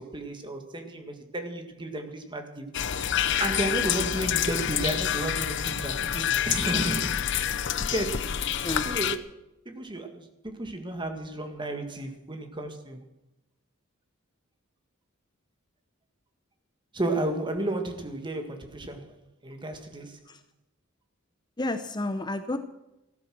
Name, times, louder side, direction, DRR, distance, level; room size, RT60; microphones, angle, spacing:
voice 1, 0.0-2.7 3.4-8.3 8.8-9.2 9.7-13.0 16.9-19.2 19.4-20.2, right 1 dB, 25° right, 1.9 m, -33 dB
sound 1, 2.7-9.2, left 9 dB, 60° left, 0.8 m, -27 dB
voice 2, 21.6-22.6, left 2 dB, 20° left, 0.7 m, -31 dB
15.0 x 12.5 x 6.2 m
head